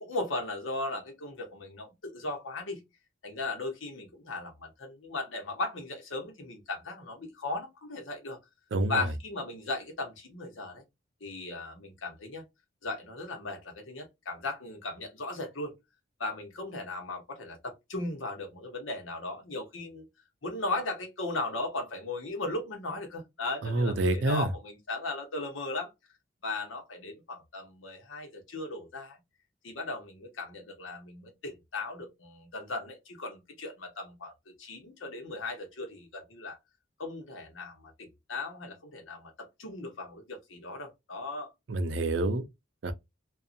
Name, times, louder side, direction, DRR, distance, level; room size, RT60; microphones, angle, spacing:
voice 1, 0.0-2.8 3.2-8.4 8.9-10.8 11.2-12.4 12.8-15.7 16.2-20.1 20.4-25.9 26.4-29.2 29.6-34.3 34.6-36.6 37.0-41.5, left 2 dB, 85° left, 1.0 m, -37 dB
voice 2, 8.7-9.1 23.6-24.5 41.7-42.4 42.8-42.9, right 2 dB, 65° right, 0.5 m, -27 dB
2.6 x 2.3 x 2.5 m
head